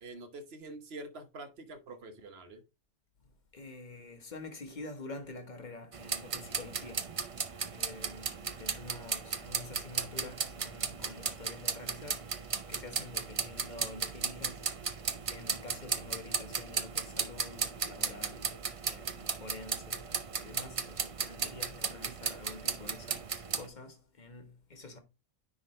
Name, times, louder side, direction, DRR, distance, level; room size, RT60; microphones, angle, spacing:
voice 1, 0.0-2.6, right 2 dB, 60° right, 1.2 m, -46 dB
voice 2, 3.2-7.1 7.7-18.6 18.8-25.0, left 2 dB, 40° left, 1.3 m, -48 dB
sound 1, 5.9-23.7, right 5 dB, 40° right, 0.5 m, -36 dB
9.7 x 3.9 x 3.1 m
omnidirectional pair, 1.2 m